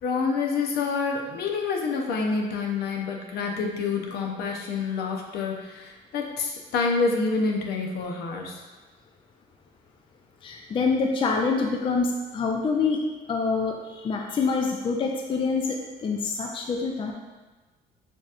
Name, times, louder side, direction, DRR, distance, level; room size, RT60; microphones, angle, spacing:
voice 1, 0.0-8.6, left 4 dB, 70° left, 1 dB, 0.8 m, -27 dB
voice 2, 10.4-13.0 13.3-17.1, left 4 dB, 30° left, 2 dB, 0.4 m, -26 dB
6.8 x 2.9 x 2.5 m, 1.2 s
cardioid pair, 110°, 17 cm